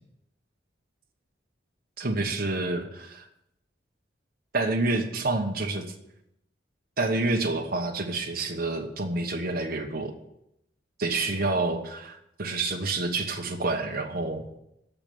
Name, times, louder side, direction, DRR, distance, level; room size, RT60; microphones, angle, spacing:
voice 1, 2.0-3.3 4.5-5.9 7.0-10.1 11.0-14.5, right 2 dB, 55° right, 2 dB, 1.2 m, -28 dB
9.7 x 6.8 x 8.6 m, 0.81 s
head